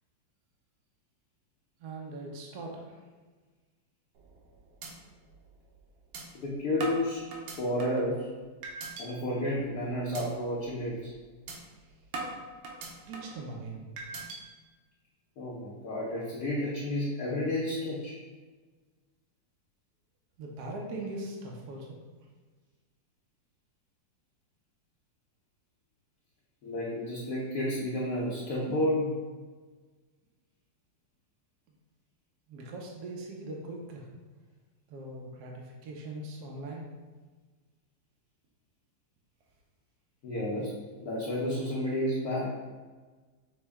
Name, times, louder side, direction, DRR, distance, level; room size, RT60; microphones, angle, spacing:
voice 1, 1.8-3.0 13.1-13.9 20.4-22.0 32.5-34.1 34.9-36.9, right 2 dB, 65° right, -1 dB, 1.1 m, -40 dB
sound 1, 4.2-4.5 4.8-4.9 5.3-5.4 6.1-6.2 6.8-8.1 8.6-9.1 9.5-9.7 10.1-10.3 10.7-10.8 11.5-11.6 12.1-13.4 14.0-14.4, right 3 dB, 85° right, 1.4 m, -39 dB
voice 2, 6.4-7.2 7.6-8.3 9.0-11.1 15.4-18.1 26.6-29.2 40.2-40.7 41.0-42.5, left 1 dB, 65° left, -6 dB, 1.1 m, -31 dB
6.1 x 2.2 x 3.4 m, 1.4 s
omnidirectional pair, 2.1 m